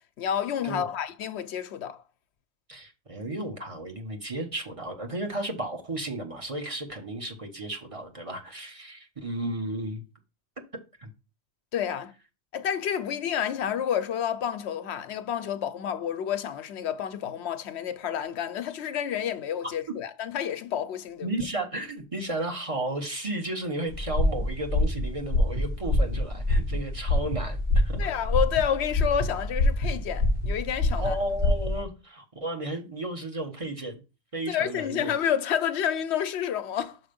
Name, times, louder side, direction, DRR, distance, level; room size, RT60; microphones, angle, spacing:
voice 1, 0.2-2.0 11.7-12.1 12.5-21.3 28.0-31.2 34.5-37.0, left 9 dB, 85° left, 1.0 m, -29 dB
voice 2, 2.7-10.0 11.0-11.1 21.2-28.1 31.0-34.0 34.3-35.1, right 1 dB, 30° right, 1.1 m, -33 dB
sound 1, 23.9-31.8, left 2 dB, 85° right, 3.2 m, -26 dB
6.2 x 4.4 x 5.2 m
omnidirectional pair, 1.1 m